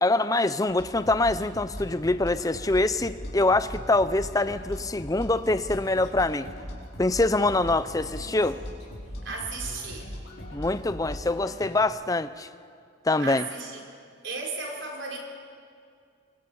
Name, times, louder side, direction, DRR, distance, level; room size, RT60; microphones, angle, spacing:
voice 1, 0.0-6.5 7.0-8.6 10.5-12.5 13.0-13.5, left 2 dB, 20° left, 13 dB, 0.6 m, -24 dB
sound 1, 0.7-11.9, equal, 85° left, 5.6 m, -40 dB
voice 2, 9.2-10.2 13.2-13.8 14.2-15.2, right 3 dB, 70° right, 0 dB, 4.0 m, -35 dB
25.5 x 25.0 x 5.5 m, 2.2 s
head